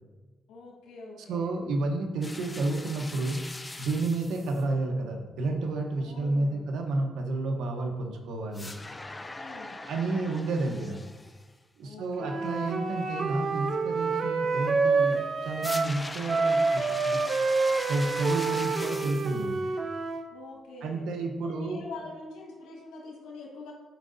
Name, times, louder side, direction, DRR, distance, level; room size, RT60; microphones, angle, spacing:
voice 1, 0.5-1.7 6.0-6.7 9.4-9.8 11.8-12.4 20.3-21.1 21.4-23.7, left 3 dB, 85° left, -2 dB, 1.6 m, -44 dB
voice 2, 1.3-3.4 3.8-8.7 9.8-11.0 11.8-17.2 17.9-19.6 20.8-21.8, right 2 dB, 80° right, 4 dB, 0.9 m, -31 dB
sound 1, 2.2-4.6 8.5-11.5 15.6-19.5, left 2 dB, 20° left, 0.5 m, -41 dB
Wind instrument woodwind instrument, 12.2-15.9 16.3-20.3, right 4 dB, 45° right, 0.6 m, -28 dB
10.5 x 4.7 x 2.6 m, 1.3 s
cardioid pair, 90°, 0 cm